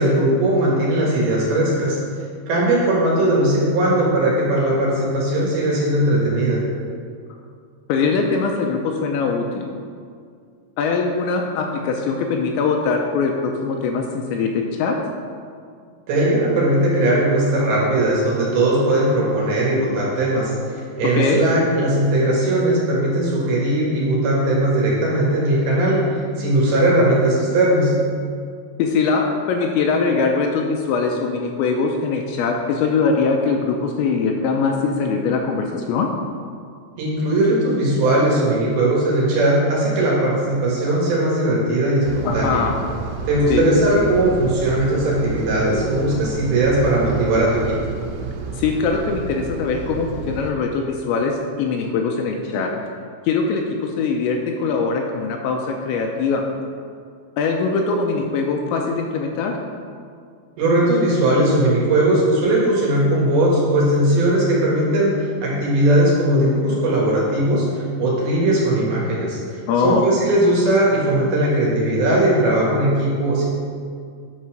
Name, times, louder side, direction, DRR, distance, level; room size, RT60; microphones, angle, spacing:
voice 1, 0.0-2.0 2.5-6.6 16.1-27.9 37.0-42.6 43.3-47.8 60.6-69.4 69.8-73.5, right 1 dB, 60° right, -5 dB, 3.2 m, -19 dB
voice 2, 7.9-9.7 10.8-15.0 21.1-21.4 28.8-36.1 42.2-42.8 43.5-43.6 48.6-52.7 53.2-56.5 57.4-59.6 69.7-70.0, left 4 dB, 85° left, 2 dB, 2.7 m, -22 dB
sound 1, 42.0-50.5, right 4 dB, 90° right, 3.4 m, -30 dB
9.4 x 5.6 x 6.2 m, 2.2 s
omnidirectional pair, 5.6 m